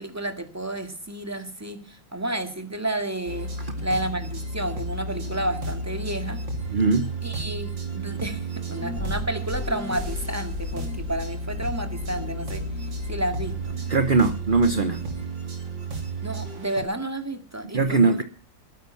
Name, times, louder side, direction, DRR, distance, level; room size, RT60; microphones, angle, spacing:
voice 1, 0.0-3.5 3.8-6.4 7.2-12.7 13.0-13.8 16.2-18.2, right 1 dB, 10° right, 2.1 m, -31 dB
sound 1, 3.2-16.8, right 2 dB, 75° right, 3.9 m, -32 dB
voice 2, 6.7-7.1 13.9-15.0 17.7-18.2, right 4 dB, 35° right, 0.8 m, -21 dB
sound 2, 8.8-14.2 14.5-15.2, left 4 dB, 45° left, 2.3 m, -37 dB
21.0 x 10.0 x 5.7 m
omnidirectional pair, 2.0 m